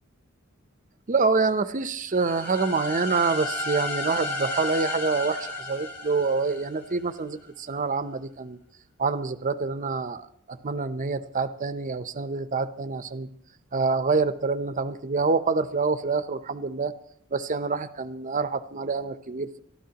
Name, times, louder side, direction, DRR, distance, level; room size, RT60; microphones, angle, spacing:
voice 1, 1.1-8.6 9.0-13.3 13.7-16.9 17.3-19.6, right 4 dB, 40° right, 12 dB, 0.6 m, -26 dB
sound 1, 2.1-7.0, left 2 dB, 45° left, 3.7 m, -33 dB
23.0 x 12.5 x 2.9 m, 0.67 s
head